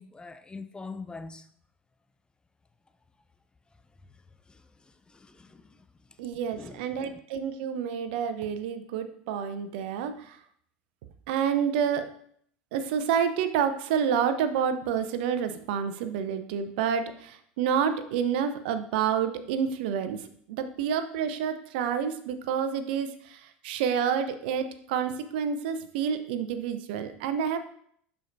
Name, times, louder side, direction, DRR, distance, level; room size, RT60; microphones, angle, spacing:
voice 1, 0.0-1.5 4.1-6.2 6.5-7.1, left 4 dB, 15° left, 0.5 m, -45 dB
voice 2, 6.2-10.4 11.3-12.1 12.7-27.6, right 7 dB, 70° right, 0.7 m, -29 dB
11.0 x 4.6 x 2.6 m
hypercardioid pair, 80°, 6 cm